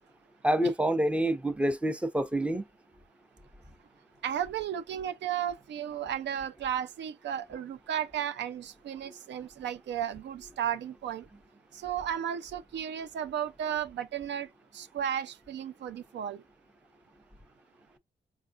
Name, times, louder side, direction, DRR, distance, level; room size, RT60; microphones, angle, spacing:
voice 1, 0.4-2.6, right 1 dB, 5° right, 0.6 m, -27 dB
voice 2, 4.2-11.3 11.7-14.5 14.7-16.4, right 9 dB, 80° right, 0.4 m, -34 dB
4.5 x 2.3 x 2.4 m
cardioid pair, 80°, 18 cm